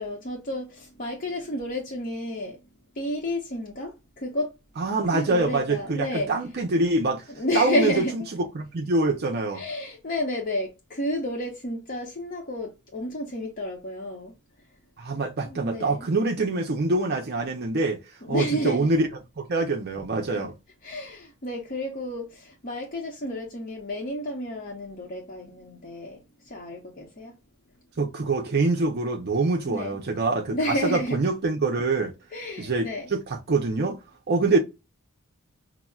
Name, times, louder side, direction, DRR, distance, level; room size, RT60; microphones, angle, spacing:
voice 1, 0.0-2.6 2.9-4.5 5.1-6.3 7.3-8.1 9.5-14.4 15.4-16.1 18.2-18.9 20.3-20.5 20.8-27.4 29.7-30.0 30.5-31.2 32.3-33.1 34.4-34.6, left 1 dB, 40° left, 0.8 m, -31 dB
voice 2, 4.8-7.2 7.5-8.2 8.5-9.6 15.0-18.0 18.3-19.1 19.4-20.5 28.0-32.1 32.6-34.0 34.3-34.6, right 3 dB, 45° right, 0.6 m, -25 dB
5.7 x 2.0 x 2.3 m
head